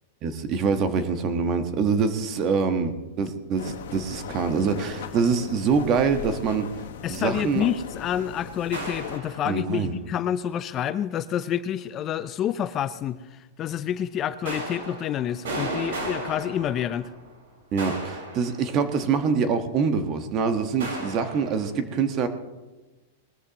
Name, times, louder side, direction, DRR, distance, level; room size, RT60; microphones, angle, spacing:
voice 1, 0.2-6.7 7.1-7.7 9.4-10.0 17.7-22.3, right 5 dB, 35° right, 8 dB, 1.3 m, -25 dB
sound 1, 3.6-9.2, left 7 dB, 80° left, 1.3 m, -38 dB
voice 2, 7.0-17.1, left 10 dB, 30° left, 13 dB, 0.5 m, -28 dB
sound 2, 8.7-9.8 14.4-17.3 17.8-19.1 20.8-21.7, right 1 dB, 80° right, 4.9 m, -35 dB
20.0 x 13.5 x 3.0 m, 1.1 s
hypercardioid pair, 135°, 0 cm